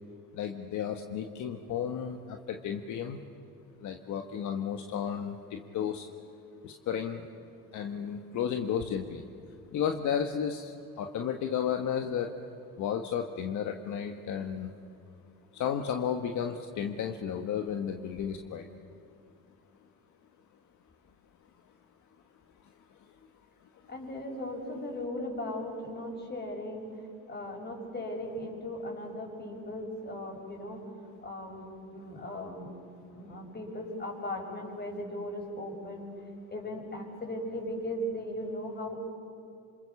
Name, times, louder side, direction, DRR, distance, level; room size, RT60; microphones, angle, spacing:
voice 1, 0.3-3.2 3.8-6.1 6.6-7.2 7.7-9.2 9.7-10.7 11.0-12.3 12.8-14.7 15.5-18.6, left 8 dB, 60° left, 5 dB, 1.6 m, -33 dB
voice 2, 23.9-26.9 27.3-30.8 31.2-32.7 33.1-36.1 36.5-39.0, left 1 dB, 30° left, 1 dB, 7.0 m, -37 dB
27.5 x 27.0 x 7.2 m, 2.7 s
cardioid pair, 95°, 33 cm